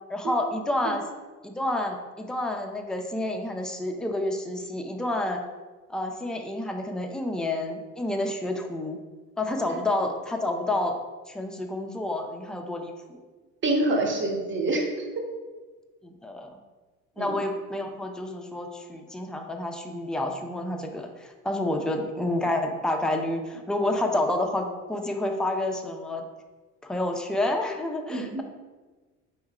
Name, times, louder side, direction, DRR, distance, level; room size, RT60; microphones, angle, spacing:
voice 1, 0.1-1.0 1.4-5.4 5.9-9.0 9.4-11.0 11.3-13.2 16.0-16.5 17.2-26.2 26.8-28.4, left 1 dB, ahead, 3 dB, 0.4 m, -29 dB
voice 2, 13.6-15.1 17.2-17.4 28.1-28.4, right 2 dB, 35° right, 1 dB, 1.0 m, -27 dB
4.6 x 3.1 x 3.6 m, 1.3 s
supercardioid pair, 100°, 34 cm